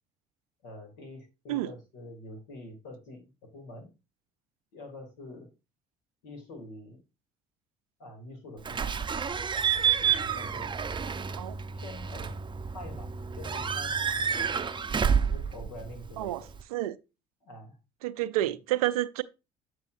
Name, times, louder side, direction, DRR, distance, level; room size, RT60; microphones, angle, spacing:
voice 1, 0.6-3.9 4.7-5.5 6.2-7.0 8.0-9.0 10.0-10.8 11.7-12.4 12.7-14.5 15.3-16.5 17.4-17.8 18.4-18.5, left 1 dB, 75° left, 2.7 m, -46 dB
Slam / Squeak / Alarm, 8.6-16.6, right 7 dB, 25° right, 0.6 m, -29 dB
voice 2, 18.0-19.2, right 15 dB, 90° right, 0.5 m, -29 dB
8.3 x 6.1 x 2.6 m
hypercardioid pair, 60°, 18 cm